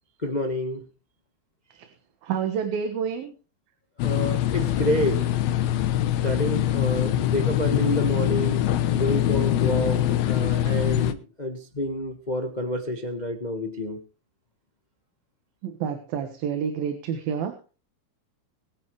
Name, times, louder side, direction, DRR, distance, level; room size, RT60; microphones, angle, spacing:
voice 1, 0.2-0.8 4.0-5.3 6.2-8.6 8.9-14.0, left 1 dB, 70° left, 4 dB, 0.4 m, -28 dB
voice 2, 2.2-3.3 15.6-17.6, right 7 dB, 85° right, 6 dB, 3.3 m, -28 dB
sound 1, 4.0-11.1, left 12 dB, 90° left, 2.9 m, -23 dB
23.0 x 9.1 x 3.3 m, 0.35 s
omnidirectional pair, 4.1 m